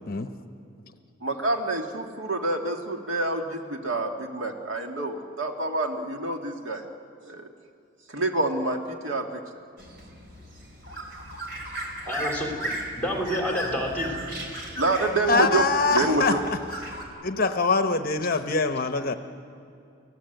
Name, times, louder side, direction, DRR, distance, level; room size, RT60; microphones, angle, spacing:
voice 1, 1.2-6.8 7.2-7.5 8.1-9.3 14.7-16.4, right 2 dB, 75° right, 3 dB, 2.1 m, -27 dB
sound 1, 9.8-17.0, right 1 dB, 50° right, 4.4 m, -36 dB
voice 2, 12.1-14.2, equal, 10° left, 0 dB, 3.8 m, -29 dB
voice 3, 15.3-16.6 17.2-19.1, left 4 dB, 45° left, 8 dB, 0.9 m, -24 dB
30.0 x 17.0 x 8.0 m, 2.5 s
head